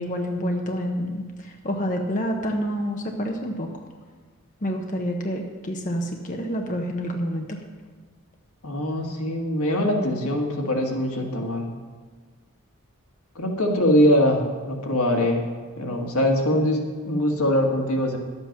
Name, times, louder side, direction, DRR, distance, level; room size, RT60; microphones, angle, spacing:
voice 1, 0.0-3.7 4.6-7.6, equal, 35° left, 2 dB, 0.8 m, -28 dB
voice 2, 8.6-11.7 13.3-18.2, equal, 85° left, 2 dB, 1.6 m, -23 dB
12.0 x 8.0 x 5.9 m, 1.5 s
head